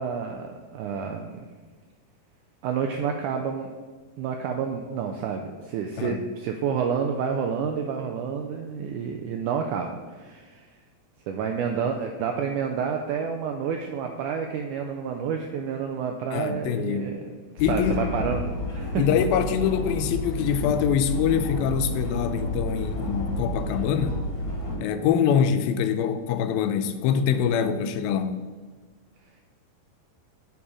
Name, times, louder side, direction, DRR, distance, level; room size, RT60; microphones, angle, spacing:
voice 1, 0.0-1.4 2.6-3.7 4.2-10.6 11.3-17.2 17.7-19.0, right 6 dB, 85° right, 1.8 m, -29 dB
voice 2, 16.3-17.1 17.6-18.0 19.0-24.2 24.8-28.4, left 8 dB, 90° left, 2.4 m, -24 dB
sound 1, 17.6-24.8, left 1 dB, 55° left, 3.5 m, -30 dB
7.1 x 5.4 x 4.9 m
omnidirectional pair, 4.1 m